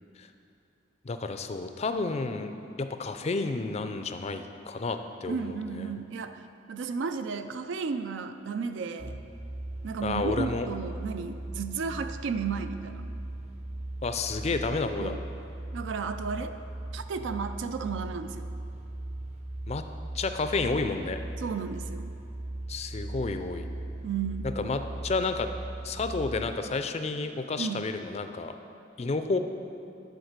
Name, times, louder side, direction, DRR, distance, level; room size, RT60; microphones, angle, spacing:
voice 1, 1.0-2.5 2.8-5.9 10.0-10.7 14.0-15.1 19.7-19.8 20.1-21.2 22.7-23.7 24.6-25.5 25.8-28.5 29.0-29.4, left 3 dB, 35° left, 8 dB, 0.4 m, -31 dB
voice 2, 5.3-6.4 6.7-9.2 9.8-13.0 15.0-15.2 15.7-16.6 16.9-18.5 21.4-22.1 24.0-24.5 27.6-27.9, right 5 dB, 75° right, 9 dB, 0.4 m, -33 dB
sound 1, 9.0-26.6, right 1 dB, 35° right, 0.7 m, -39 dB
10.5 x 4.0 x 6.6 m, 2.6 s
head